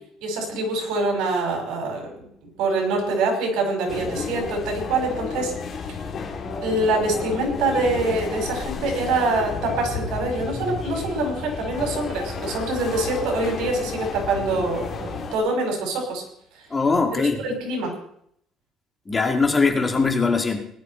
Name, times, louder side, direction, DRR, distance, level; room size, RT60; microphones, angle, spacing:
voice 1, 0.2-2.3 2.6-5.5 6.6-16.2 17.2-17.9, right 2 dB, 80° right, 2 dB, 5.8 m, -25 dB
sound 1, 3.9-15.4, left 5 dB, 40° left, 2.6 m, -32 dB
voice 2, 16.7-17.4 19.1-20.7, left 4 dB, 20° left, 4 dB, 1.9 m, -21 dB
18.5 x 12.0 x 4.4 m, 0.68 s
cardioid pair, 150°, 0 cm